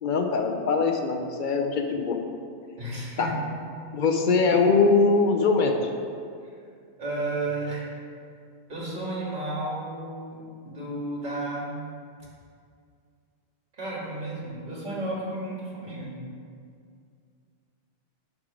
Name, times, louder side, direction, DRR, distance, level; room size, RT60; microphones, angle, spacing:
voice 1, 0.0-2.2 3.2-3.3 3.9-5.7, left 4 dB, 45° left, 3 dB, 0.7 m, -22 dB
voice 2, 2.8-3.4 6.4-6.6 7.0-7.9 8.7-11.8 13.7-16.2, right 2 dB, 35° right, -5 dB, 2.0 m, -33 dB
11.0 x 3.7 x 4.9 m, 2.2 s
omnidirectional pair, 1.4 m